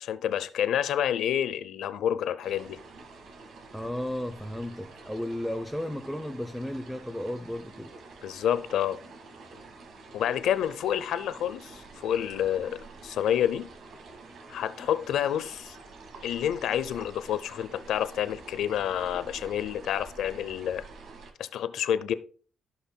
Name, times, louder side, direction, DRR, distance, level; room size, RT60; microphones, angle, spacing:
voice 1, 0.0-2.8 8.2-9.0 10.1-13.7 14.5-15.7 16.2-20.8 21.4-22.1, left 10 dB, 80° left, 0.6 m, -29 dB
sound 1, 2.4-21.3, right 3 dB, 70° right, 1.7 m, -48 dB
voice 2, 3.7-7.9, left 1 dB, ahead, 0.7 m, -34 dB
15.5 x 5.5 x 2.2 m
cardioid pair, 85°, 0 cm